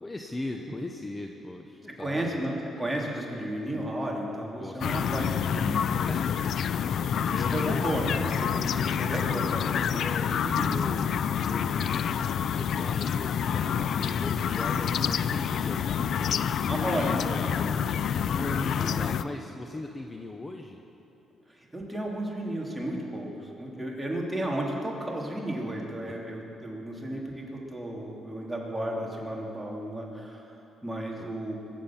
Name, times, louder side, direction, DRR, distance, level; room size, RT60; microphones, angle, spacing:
voice 1, 0.0-2.4 4.6-5.3 6.1-6.3 10.0-10.4 10.7-11.1 11.5-12.1 12.5-17.5 18.3-20.8 26.1-26.2 31.2-31.3, left 2 dB, 20° left, 3 dB, 0.9 m, -39 dB
voice 2, 1.9-5.8 7.3-10.9 16.7-17.8 18.3-19.1 21.5-30.5 30.8-31.6, right 1 dB, 10° right, -2 dB, 3.0 m, -33 dB
sound 1, 4.8-19.2, left 8 dB, 65° left, 0.4 m, -28 dB
22.5 x 7.5 x 7.3 m, 2.9 s
cardioid pair, 90°, 0 cm